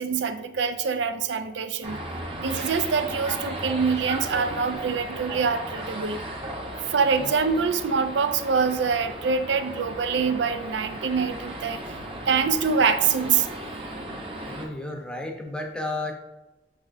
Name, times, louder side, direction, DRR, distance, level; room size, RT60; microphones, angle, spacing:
voice 1, 0.0-2.0 2.4-6.2 6.9-11.8 12.3-13.5, right 5 dB, 85° right, 9 dB, 0.5 m, -25 dB
sound 1, 1.8-14.6, right 1 dB, 30° right, 0.9 m, -36 dB
voice 2, 14.5-16.1, left 2 dB, 5° left, 2 dB, 0.7 m, -32 dB
6.1 x 6.0 x 2.6 m, 0.99 s
head